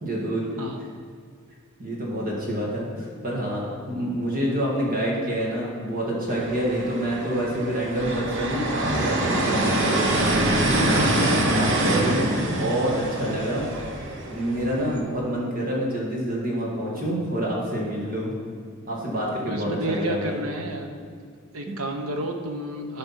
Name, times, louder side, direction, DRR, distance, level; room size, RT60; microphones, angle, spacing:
voice 1, 0.0-0.4 1.8-13.9 14.3-18.3 18.9-20.4 21.2-21.3, right 1 dB, 45° right, -3 dB, 2.0 m, -27 dB
sound 1, 6.3-15.0, right 1 dB, 60° right, 1.1 m, -25 dB
voice 2, 19.5-20.9 21.5-23.0, right 1 dB, 85° right, 4 dB, 1.0 m, -30 dB
12.5 x 5.2 x 4.4 m, 2.1 s
head